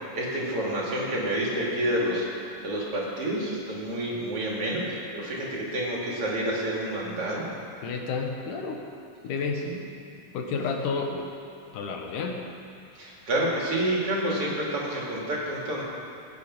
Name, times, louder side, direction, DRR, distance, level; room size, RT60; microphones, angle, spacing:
voice 1, 0.1-7.5 9.6-9.8 12.9-15.8, right 1 dB, 45° right, -4 dB, 3.3 m, -29 dB
voice 2, 7.8-8.8 9.2-9.6 10.3-11.3 11.7-12.5, left 4 dB, 80° left, 2 dB, 2.8 m, -30 dB
20.0 x 9.5 x 5.4 m, 2.5 s
omnidirectional pair, 3.7 m